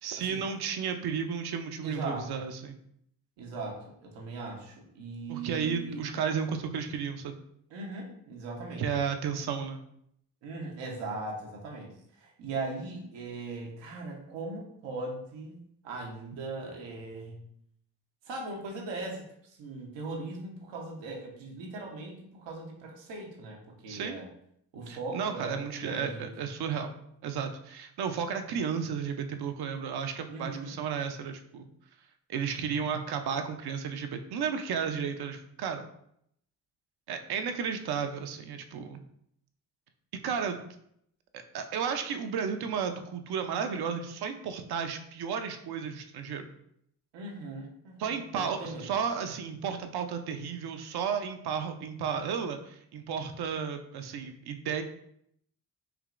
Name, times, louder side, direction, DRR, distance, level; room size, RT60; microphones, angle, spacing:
voice 1, 0.0-2.8 5.3-7.4 8.8-9.8 23.9-24.2 24.9-26.9 27.2-31.7 32.3-35.8 37.1-39.0 40.2-40.6 41.3-46.5 48.0-54.8, right 6 dB, 60° right, 7 dB, 0.6 m, -33 dB
voice 2, 1.8-2.4 3.4-6.0 7.7-8.8 10.4-15.6 15.8-17.4 18.2-24.3 24.7-26.3 30.3-30.8 47.1-48.9, right 3 dB, 85° right, -1 dB, 1.0 m, -39 dB
4.8 x 2.9 x 2.5 m, 0.72 s
supercardioid pair, 50°, 43 cm